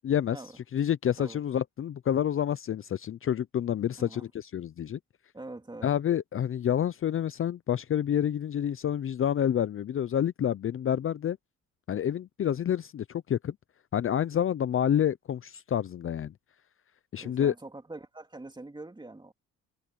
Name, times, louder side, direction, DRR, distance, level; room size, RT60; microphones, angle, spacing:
voice 1, 0.0-0.4 0.7-5.0 5.8-11.4 11.9-13.5 13.9-16.3 17.1-17.5, left 9 dB, 45° left, 0.6 m, -28 dB
voice 2, 5.3-5.9 17.2-19.3, right 2 dB, 15° right, 3.2 m, -44 dB
cardioid pair, 90°, 30 cm